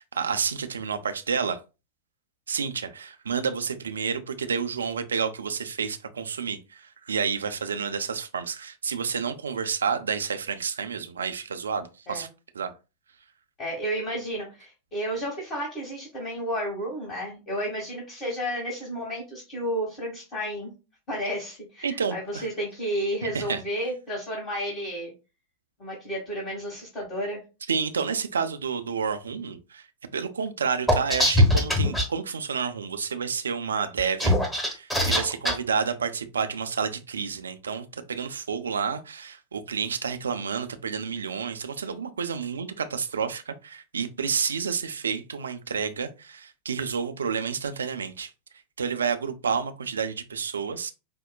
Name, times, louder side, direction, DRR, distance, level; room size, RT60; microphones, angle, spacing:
voice 1, 0.0-1.6 2.5-12.3 12.5-12.7 21.8-22.5 23.3-23.6 27.7-29.8 30.1-34.4 34.6-48.3 48.8-50.9, right 6 dB, 70° right, 0.4 m, -30 dB
voice 2, 13.6-20.7 21.1-25.1 25.8-27.4, equal, 35° left, 1.3 m, -32 dB
sound 1, 30.9-32.1 34.0-35.5, left 1 dB, 5° left, 1.0 m, -21 dB
5.1 x 2.1 x 2.3 m
figure-of-eight pair, 90°, 0 cm